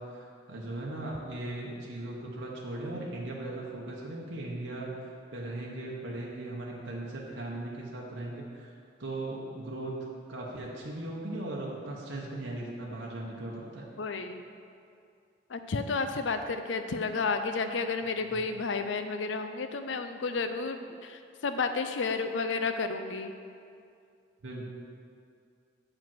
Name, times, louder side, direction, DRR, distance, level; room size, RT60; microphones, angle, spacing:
voice 1, 0.0-8.7 9.0-9.9 10.3-13.9 18.2-18.4 24.4-24.7, right 2 dB, 90° right, -3 dB, 1.0 m, -38 dB
voice 2, 14.0-14.4 15.5-23.3, left 4 dB, 85° left, 8 dB, 0.5 m, -31 dB
7.4 x 5.0 x 6.0 m, 2.4 s
head